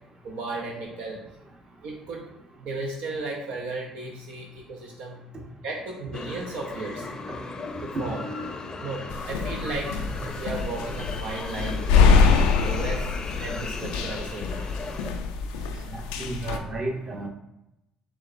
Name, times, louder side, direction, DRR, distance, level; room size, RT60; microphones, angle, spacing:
voice 1, 0.2-1.2 1.8-2.3 2.6-5.2 5.6-7.1 7.8-8.2 8.8-9.9 10.3-12.2 12.6-14.7, right 3 dB, 75° right, -1 dB, 0.6 m, -35 dB
sound 1, 6.1-15.1, left 3 dB, 30° left, 0.5 m, -37 dB
sound 2, 9.1-16.6, left 5 dB, 90° left, 0.3 m, -24 dB
voice 2, 15.9-17.3, right 2 dB, 40° right, 1 dB, 1.0 m, -32 dB
4.5 x 3.3 x 2.5 m, 0.88 s
supercardioid pair, 65°, 2 cm